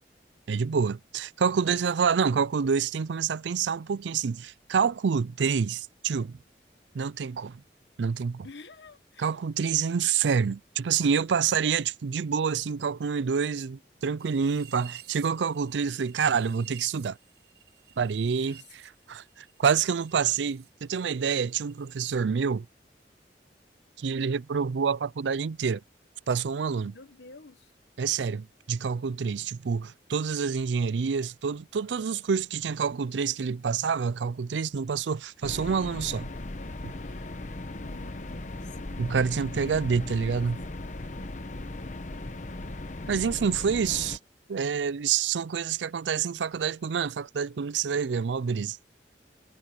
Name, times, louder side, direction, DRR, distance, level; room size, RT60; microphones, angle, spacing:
voice 1, 0.5-6.4 6.9-7.6 8.0-8.5 9.2-17.2 18.0-22.7 24.0-25.8 26.3-26.9 28.0-36.3 39.0-40.6 43.1-44.2 44.5-48.8, right 6 dB, 90° right, 0.4 m, -27 dB
voice 2, 8.4-9.4 18.2-18.6 26.8-27.7 37.0-38.6 39.5-40.4, left 3 dB, 85° left, 1.3 m, -51 dB
sound 1, 14.2-20.7 21.0-22.1, right 11 dB, 75° right, 5.2 m, -52 dB
sound 2, 35.4-44.2, left 2 dB, 45° left, 1.0 m, -38 dB
head